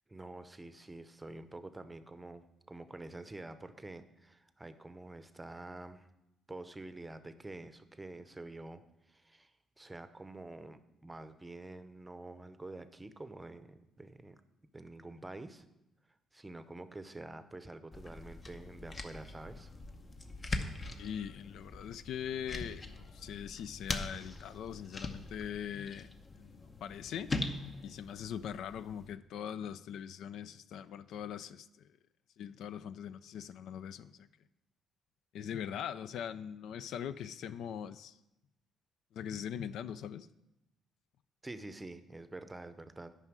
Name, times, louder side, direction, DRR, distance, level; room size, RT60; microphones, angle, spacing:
voice 1, 0.1-6.1 6.5-8.8 9.1-14.4 14.7-15.7 16.3-19.7 41.4-43.1, right 2 dB, 15° right, 0.7 m, -47 dB
sound 1, 17.9-29.1, left 2 dB, 35° left, 0.8 m, -42 dB
voice 2, 20.9-26.1 26.4-27.3 27.8-31.9 32.4-34.3 35.3-38.2 39.1-40.3, left 9 dB, 80° left, 0.3 m, -41 dB
9.6 x 5.5 x 6.0 m
cardioid pair, 90°, 0 cm